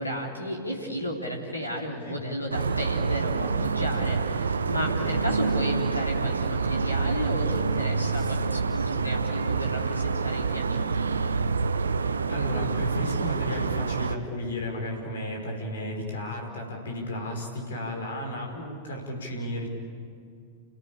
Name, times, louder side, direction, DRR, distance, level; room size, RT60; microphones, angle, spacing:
voice 1, 0.0-11.1, equal, 85° left, -1 dB, 3.5 m, -33 dB
sound 1, 2.5-14.2, right 4 dB, 75° right, 0.8 m, -27 dB
voice 2, 12.3-19.7, left 1 dB, 65° left, 2 dB, 5.3 m, -34 dB
30.0 x 17.5 x 8.9 m, 2.3 s
figure-of-eight pair, 90°, 0 cm